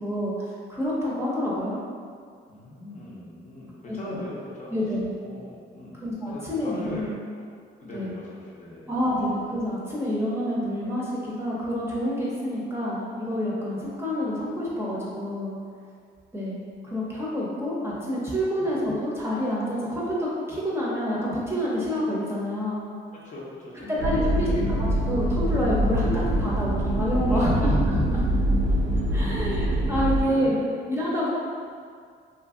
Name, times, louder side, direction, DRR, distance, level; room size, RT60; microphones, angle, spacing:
voice 1, 0.0-1.8 3.9-4.2 4.7-5.1 6.0-7.1 7.9-8.1 8.9-15.6 16.3-22.8 23.9-26.1 26.4-28.3 29.1-30.6 30.9-31.3, equal, 15° right, -6 dB, 0.6 m, -28 dB
voice 2, 2.5-4.7 5.2-5.9 6.3-7.5 7.8-8.9 18.5-18.7 23.1-24.6 27.3-27.8 30.2-30.8, left 1 dB, 40° left, -6 dB, 0.6 m, -40 dB
sound 1, 24.0-30.2, right 1 dB, 65° right, 0.5 m, -24 dB
2.7 x 2.6 x 2.4 m, 2.1 s
cardioid pair, 90°, 20 cm